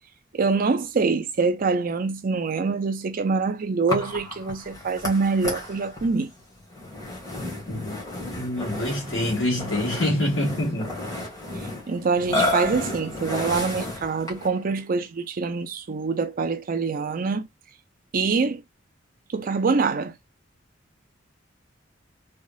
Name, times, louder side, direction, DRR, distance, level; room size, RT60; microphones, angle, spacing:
voice 1, 0.3-6.3 11.9-17.5 18.1-18.6 19.3-20.1, right 4 dB, 45° right, 0.4 m, -25 dB
Burping eructation, 3.9-14.6, left 2 dB, 20° left, 1.7 m, -32 dB
voice 2, 8.2-10.9, left 1 dB, 75° left, 1.7 m, -26 dB
3.5 x 3.5 x 2.3 m
head